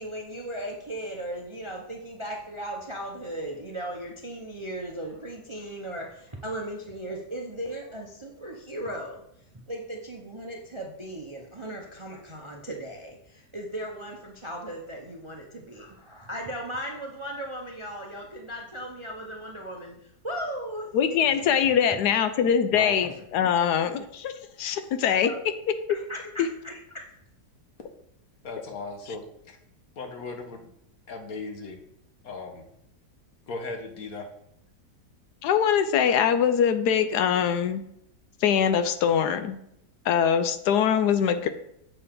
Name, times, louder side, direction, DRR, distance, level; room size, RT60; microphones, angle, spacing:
voice 1, 0.0-9.2 9.7-21.9 25.2-25.4 25.9-27.1, right 1 dB, 30° right, 1 dB, 0.6 m, -37 dB
voice 2, 20.9-24.3 24.6-25.3 26.4-26.5 35.4-37.8 38.4-39.6 40.0-41.5, left 8 dB, 75° left, 9 dB, 1.1 m, -23 dB
voice 3, 22.7-23.1 23.4-23.5 23.8-24.0 27.8-27.9 28.4-29.6 30.0-30.7 31.1-31.8 32.2-32.7 33.5-34.3, left 3 dB, 60° left, 4 dB, 1.5 m, -37 dB
7.7 x 6.7 x 3.8 m, 0.75 s
omnidirectional pair, 1.8 m